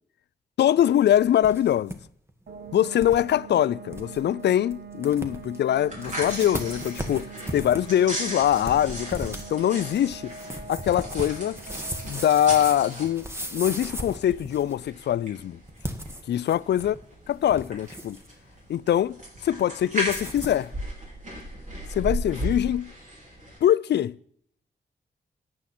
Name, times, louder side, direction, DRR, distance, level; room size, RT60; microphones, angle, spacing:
voice 1, 0.6-2.0 2.7-10.3 10.7-11.6 12.0-15.6 16.3-17.0 17.3-18.2 18.7-20.7 21.9-22.9 23.6-24.2, left 11 dB, 80° left, 0.4 m, -23 dB
sound 1, 1.1-2.0 2.3-2.4 3.0-3.2 3.6-3.7 3.9-4.2 4.7-4.8 5.0-5.6 6.0-14.8 15.7-17.0 17.3-18.3 20.0-20.6, right 1 dB, 15° right, 1.6 m, -37 dB
sound 2, 2.5-17.0, right 6 dB, 65° right, 1.1 m, -45 dB
sound 3, 5.7-23.6, equal, 45° right, 5.1 m, -37 dB
13.5 x 9.7 x 4.3 m
wide cardioid pair, 110°, 18 cm